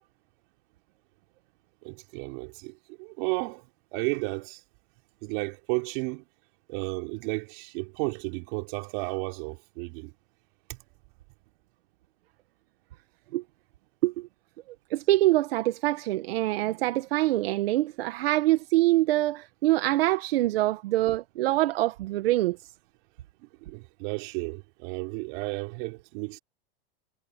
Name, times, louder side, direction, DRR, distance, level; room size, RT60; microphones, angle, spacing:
voice 1, 1.8-3.6 3.9-4.6 5.2-6.2 6.7-10.1 10.7-10.8 23.4-26.4, right 30 dB, 55° right, 4.7 m, -33 dB
voice 2, 14.9-22.6, right 16 dB, 75° right, 1.4 m, -24 dB
supercardioid pair, 145°, 30 cm